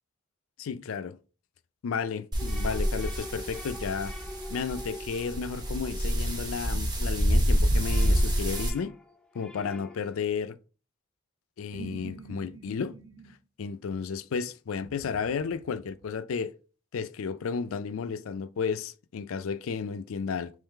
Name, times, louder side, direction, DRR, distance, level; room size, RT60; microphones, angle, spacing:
voice 1, 0.6-1.2 1.8-4.1 4.5-8.9 9.3-10.6 11.6-13.0 13.6-16.5 16.9-20.5, left 6 dB, 70° left, 0.4 m, -33 dB
sound 1, 2.3-8.7, equal, 20° right, 0.7 m, -27 dB
sound 2, 2.4-7.1 7.5-10.2, left 1 dB, 5° left, 0.4 m, -45 dB
sound 3, 11.7-13.4 14.8-16.1, right 4 dB, 60° right, 0.8 m, -46 dB
3.7 x 3.1 x 4.4 m
head